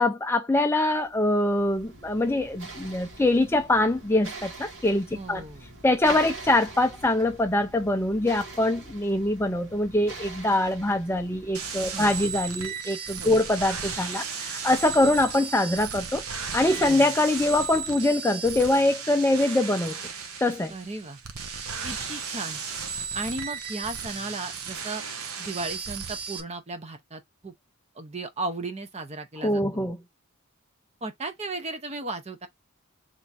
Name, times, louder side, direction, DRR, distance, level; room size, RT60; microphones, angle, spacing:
voice 1, 0.0-5.4 5.8-16.2 16.5-20.0 20.4-20.7 29.4-30.0, left 1 dB, 10° left, 0.4 m, -24 dB
sound 1, 0.9-12.4, right 3 dB, 60° right, 1.7 m, -43 dB
voice 2, 5.1-5.7 6.0-6.2 11.8-12.1 13.2-13.4 16.8-17.1 20.7-21.2 21.8-22.6 23.1-25.0 25.4-27.5 27.9-29.8 31.0-32.5, right 2 dB, 30° right, 0.8 m, -35 dB
sound 2, 11.5-26.4, right 6 dB, 90° right, 0.9 m, -35 dB
3.5 x 3.0 x 4.1 m
head